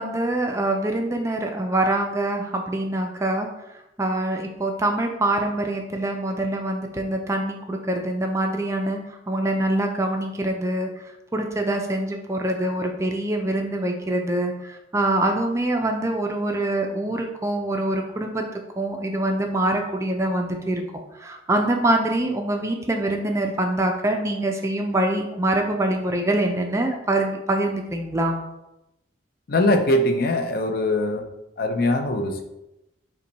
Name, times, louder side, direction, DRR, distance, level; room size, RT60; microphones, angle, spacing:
voice 1, 0.0-3.5 4.0-9.0 9.3-10.9 11.3-18.4 18.8-20.8 21.2-28.4, right 1 dB, 15° right, 3 dB, 0.3 m, -24 dB
voice 2, 29.5-31.3 31.6-32.4, left 1 dB, 50° left, 5 dB, 0.5 m, -21 dB
5.5 x 2.2 x 4.0 m, 0.92 s
head